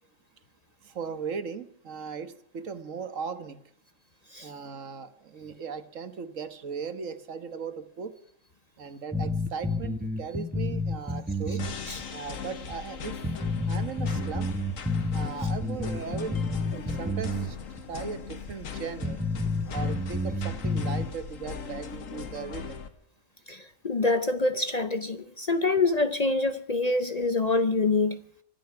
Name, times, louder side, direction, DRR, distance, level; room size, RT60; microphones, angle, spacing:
voice 1, 0.8-3.6 4.4-8.1 8.8-11.6 12.1-13.2 13.7-14.5 15.1-16.4 16.7-17.6 17.9-19.2 19.7-22.8, right 6 dB, 75° right, 1.6 m, -37 dB
sound 1, 9.1-11.7 12.0-12.1 12.7-12.8 13.2-17.5 17.8-17.9 18.5-18.6 19.0-21.1, left 2 dB, 10° right, 0.9 m, -30 dB
sound 2, 11.6-22.9, left 6 dB, 85° left, 1.7 m, -39 dB
voice 2, 23.5-28.2, left 3 dB, 40° left, 0.7 m, -26 dB
25.0 x 8.7 x 5.7 m
omnidirectional pair, 1.3 m